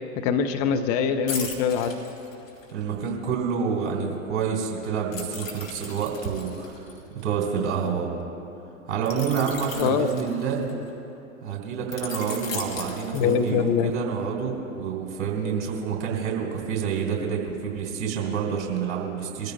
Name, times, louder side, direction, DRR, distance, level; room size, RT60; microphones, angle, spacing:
voice 1, 0.2-1.9 9.8-10.1 13.1-13.9, left 7 dB, 30° left, 6 dB, 0.6 m, -23 dB
sound 1, 1.3-2.8 5.1-7.9 9.1-10.9 11.9-13.8 14.2-14.4, left 4 dB, 65° left, 2.4 m, -37 dB
voice 2, 2.7-6.8 7.2-8.2 8.9-10.7 11.4-19.5, right 6 dB, 45° right, -1 dB, 3.5 m, -28 dB
23.0 x 14.0 x 2.2 m, 2.9 s
figure-of-eight pair, 100°, 42 cm